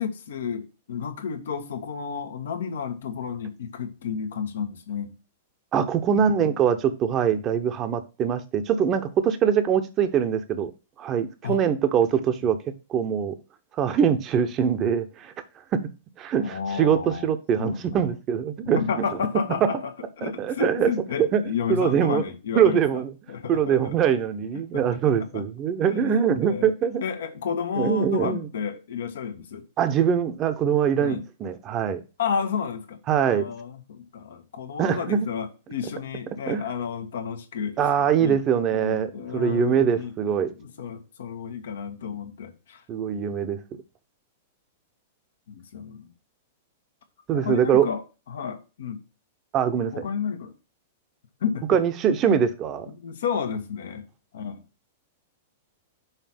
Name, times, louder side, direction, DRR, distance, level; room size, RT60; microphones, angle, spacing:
voice 1, 0.0-5.1 6.1-6.5 11.4-11.6 16.4-17.3 17.6-18.1 18.7-19.9 20.2-23.0 23.3-24.1 24.7-24.8 25.3-25.4 25.8-26.7 27.0-29.6 31.0-31.2 32.2-33.0 33.2-37.8 38.2-38.4 38.7-40.1 40.6-42.8 45.5-46.1 47.3-49.0 49.9-50.5 51.4-51.8 52.9-54.0 54.3-54.6, left 7 dB, 70° left, 1.2 m, -31 dB
voice 2, 5.7-10.7 11.0-12.6 12.9-13.4 13.8-15.3 15.7-15.9 16.2-19.0 19.6-19.7 20.2-20.9 21.2-21.4 21.7-22.2 22.5-23.1 23.5-27.0 27.8-28.5 29.8-32.0 33.1-33.5 34.8-35.3 36.5-36.6 37.8-40.5 42.9-43.6 47.3-47.9 49.5-50.0 51.7-52.9, right 8 dB, 35° right, 0.9 m, -23 dB
5.7 x 4.2 x 5.9 m
hypercardioid pair, 105°, 0 cm